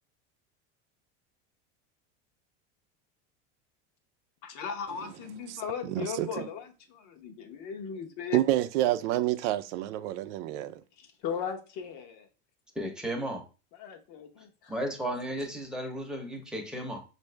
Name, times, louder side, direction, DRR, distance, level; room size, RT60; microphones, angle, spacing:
voice 1, 4.4-8.4 11.0-12.3 13.8-14.7, left 7 dB, 55° left, 1.0 m, -37 dB
voice 2, 5.5-6.5 8.3-10.8, right 14 dB, 80° right, 0.5 m, -29 dB
voice 3, 12.7-13.4 14.7-17.0, right 1 dB, ahead, 0.8 m, -34 dB
5.2 x 2.6 x 3.3 m
supercardioid pair, 135°, 34 cm